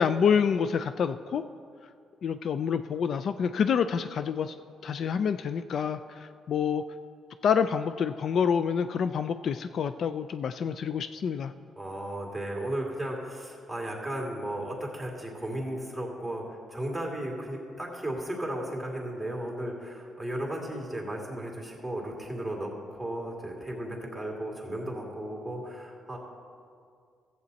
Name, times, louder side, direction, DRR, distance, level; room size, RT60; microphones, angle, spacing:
voice 1, 0.0-1.4 2.2-4.5 4.8-6.8 7.4-11.5, left 7 dB, 60° left, 11 dB, 0.3 m, -27 dB
voice 2, 11.8-26.2, right 1 dB, ahead, -1 dB, 2.4 m, -35 dB
14.0 x 7.9 x 4.1 m, 2.3 s
cardioid pair, 90°, 0 cm